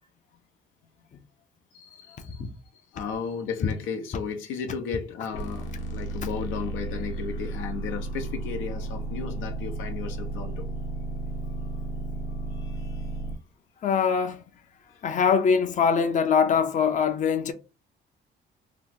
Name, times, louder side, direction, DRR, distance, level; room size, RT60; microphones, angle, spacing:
voice 1, 1.7-2.4 2.7-10.7 11.4-11.8 12.3-13.4 14.9-15.1, left 6 dB, 90° left, 0.7 m, -35 dB
sound 1, 5.3-13.4, right 2 dB, 65° left, 0.9 m, -33 dB
voice 2, 13.8-14.4 15.0-17.5, left 6 dB, 40° left, 0.5 m, -22 dB
2.9 x 2.0 x 3.5 m
cardioid pair, 90°, 20 cm